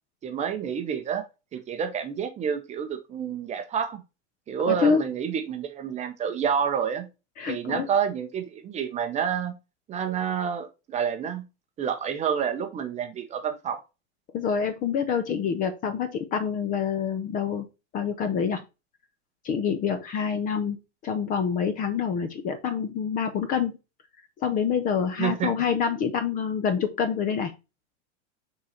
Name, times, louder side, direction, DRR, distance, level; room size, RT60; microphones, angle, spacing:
voice 1, 0.2-1.2 1.5-4.0 4.5-7.1 7.5-9.6 9.9-11.4 11.8-13.8 25.2-25.5, right 8 dB, 20° right, 7 dB, 0.7 m, -28 dB
voice 2, 4.7-5.0 7.4-7.9 14.3-17.7 17.9-18.6 19.4-20.8 21.0-23.7 24.4-27.5, left 7 dB, 20° left, 9 dB, 0.5 m, -26 dB
6.1 x 3.9 x 4.2 m, 0.27 s
supercardioid pair, 150°, 37 cm